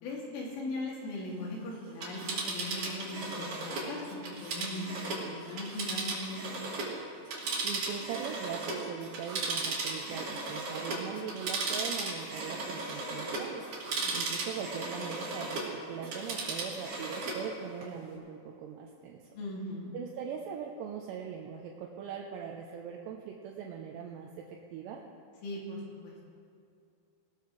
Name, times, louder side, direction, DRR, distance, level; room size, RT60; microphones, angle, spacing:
voice 1, 0.0-6.4 14.0-14.3 19.4-19.9 25.4-26.2, left 1 dB, 85° left, -4 dB, 5.2 m, -39 dB
Telephone, 1.9-7.0 7.3-15.7 16.0-17.4 17.8-17.9, right 3 dB, 55° right, 4.3 m, -36 dB
voice 2, 7.6-19.3 19.9-25.0, right 7 dB, 75° right, 0 dB, 2.8 m, -41 dB
19.5 x 18.0 x 3.3 m, 2.5 s
omnidirectional pair, 5.4 m